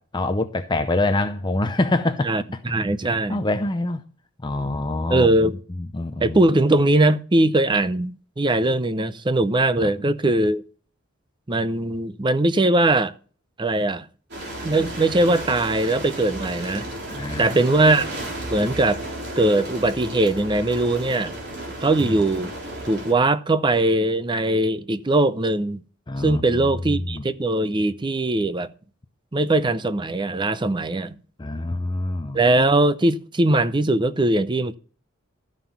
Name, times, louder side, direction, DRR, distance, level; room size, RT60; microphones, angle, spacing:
voice 1, 0.0-2.3 3.3-4.1 4.4-5.5 5.8-6.4 9.8-9.9 17.1-17.6 22.0-22.2 26.1-27.3 31.4-32.4, left 2 dB, 20° left, 0.6 m, -25 dB
voice 2, 2.2-3.4 5.1-5.6 6.2-10.6 11.5-13.1 13.6-14.1 14.6-16.9 17.4-18.1 18.5-19.0 19.4-21.3 21.8-22.5 22.9-25.8 26.2-28.7 29.3-31.2 32.3-34.7, right 2 dB, 25° right, 0.6 m, -20 dB
sound 1, 14.3-23.1, right 1 dB, 55° right, 3.6 m, -33 dB
13.0 x 5.8 x 7.1 m
head